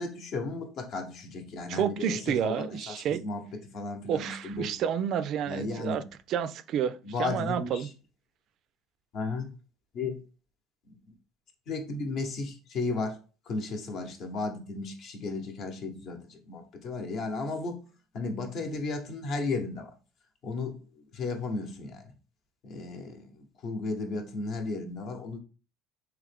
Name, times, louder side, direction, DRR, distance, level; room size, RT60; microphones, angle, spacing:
voice 1, 0.0-4.7 5.5-6.0 7.0-7.9 9.1-9.5 9.9-10.2 10.9-11.0 11.7-13.2 13.5-17.8 18.1-19.9 20.4-22.1 22.6-25.4, left 3 dB, 55° left, 0.9 m, -34 dB
voice 2, 1.7-3.2 4.1-6.0 6.3-7.9, right 9 dB, 55° right, 0.3 m, -30 dB
3.7 x 2.9 x 3.4 m
supercardioid pair, 110°, 0 cm